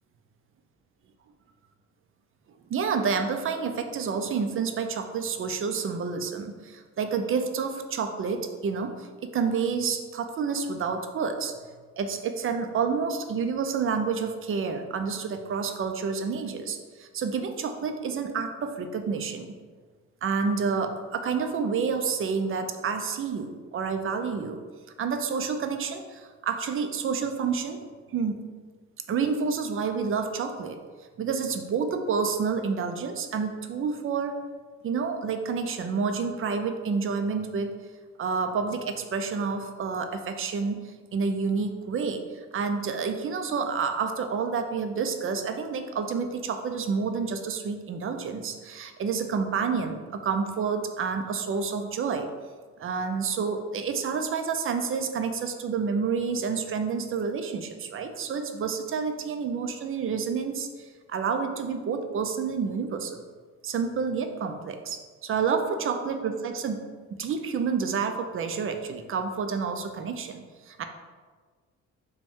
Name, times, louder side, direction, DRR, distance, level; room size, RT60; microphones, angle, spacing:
voice 1, 2.7-11.5 12.0-19.5 20.2-24.6 25.0-27.8 28.1-28.4 29.1-30.8 31.2-34.4 34.8-37.7 38.2-42.3 42.5-52.3 52.8-63.2 63.6-66.8 67.2-70.8, right 5 dB, 45° right, 6 dB, 0.4 m, -29 dB
5.0 x 2.3 x 3.6 m, 1.5 s
cardioid pair, 90°, 30 cm